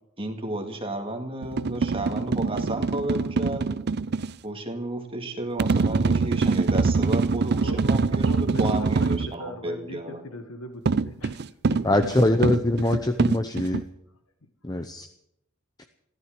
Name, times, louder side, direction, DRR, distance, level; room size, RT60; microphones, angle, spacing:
voice 1, 0.2-3.7 4.4-10.2, right 1 dB, 25° right, 4 dB, 2.2 m, -32 dB
sound 1, 1.4-4.3 5.6-9.3 10.9-13.8, right 4 dB, 50° right, 0.5 m, -24 dB
voice 2, 8.2-11.8 12.2-12.4 12.8-13.1 13.6-13.7 14.7-14.8, left 1 dB, 80° left, 8 dB, 1.4 m, -40 dB
voice 3, 11.8-13.8 14.6-15.1, left 1 dB, 20° left, 7 dB, 0.8 m, -23 dB
14.5 x 12.5 x 7.6 m, 0.77 s
head